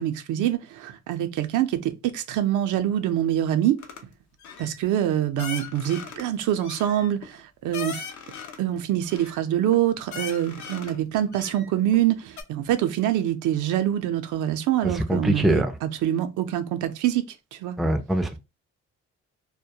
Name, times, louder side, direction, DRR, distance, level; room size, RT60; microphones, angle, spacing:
voice 1, 0.0-3.8 4.6-8.0 8.6-17.2 17.5-17.8, right 11 dB, 80° right, 0.5 m, -25 dB
sound 1, 3.8-4.0 4.4-4.8 5.4-6.3 6.6-8.7 9.1-9.8 10.1-11.0 11.3-12.0 12.4-12.5, left 6 dB, 70° left, 0.6 m, -38 dB
voice 2, 15.1-15.7 17.8-18.4, right 1 dB, ahead, 0.3 m, -22 dB
2.2 x 2.2 x 2.7 m
cardioid pair, 90°, 30 cm